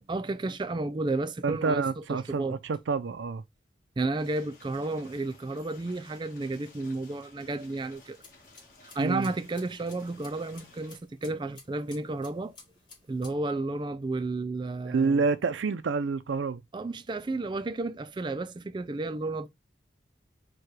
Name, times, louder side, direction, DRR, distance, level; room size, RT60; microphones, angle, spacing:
voice 1, 0.1-2.6 4.0-8.2 8.8-12.6 13.1-15.2 16.7-19.5, right 2 dB, 25° right, 0.3 m, -32 dB
voice 2, 1.4-3.4 9.0-9.3 14.8-16.6, right 4 dB, 85° right, 0.4 m, -28 dB
sound 1, 4.2-11.0, left 3 dB, 50° left, 1.6 m, -56 dB
sound 2, 7.9-13.3, left 4 dB, 25° left, 1.7 m, -55 dB
4.5 x 2.3 x 4.7 m
head